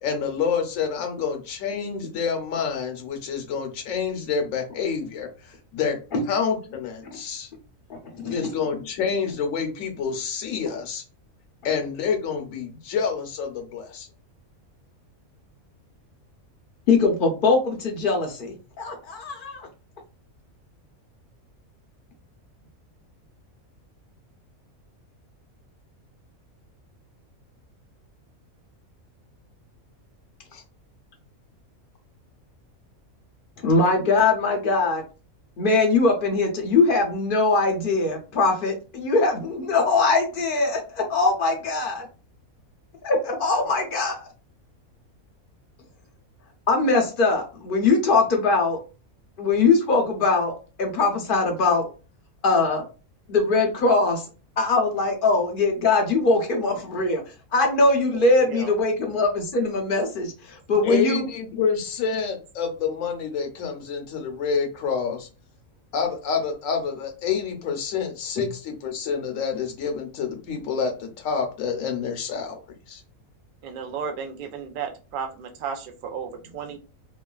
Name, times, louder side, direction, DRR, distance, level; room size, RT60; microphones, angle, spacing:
voice 1, 0.0-6.0 6.3-7.5 8.3-11.0 11.6-14.1 30.5-30.6 60.8-65.3 65.9-72.6 72.9-73.0, left 6 dB, 70° left, 4 dB, 1.0 m, -28 dB
voice 2, 7.9-8.5 16.9-19.6 33.6-35.0 35.6-42.1 43.0-44.3 46.7-48.8 49.4-51.9 52.4-52.8 53.3-54.2 54.6-57.2 57.5-61.2, left 3 dB, 50° left, 2 dB, 0.6 m, -21 dB
voice 3, 58.1-58.7 73.6-76.8, right 6 dB, 70° right, 5 dB, 0.4 m, -34 dB
3.0 x 2.2 x 2.3 m, 0.34 s
omnidirectional pair, 1.5 m